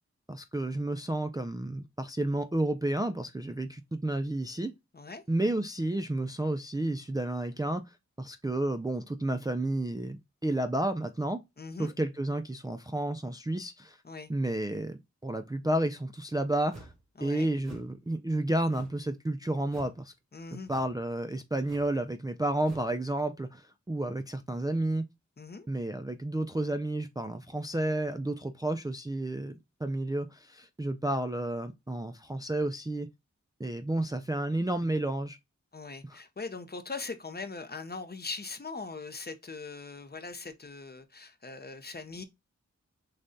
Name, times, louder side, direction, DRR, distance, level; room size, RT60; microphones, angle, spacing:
voice 1, 0.3-4.7 5.3-7.8 8.2-11.4 11.8-14.0 14.3-16.9 17.2-20.1 20.7-25.1 25.7-33.1 33.6-35.4 36.1-36.2, right 1 dB, 15° right, 0.3 m, -31 dB
voice 2, 11.6-11.9 14.0-14.3 17.2-17.5 20.3-20.7 25.4-25.7 35.7-42.2, left 4 dB, 35° left, 0.6 m, -41 dB
sound 1, 16.7-17.0 17.6-17.9 18.7-19.1 19.7-20.0 20.7-21.0 21.6-22.0 22.6-22.9, right 2 dB, 60° right, 2.4 m, -51 dB
6.4 x 2.2 x 2.6 m
wide cardioid pair, 75°, 29 cm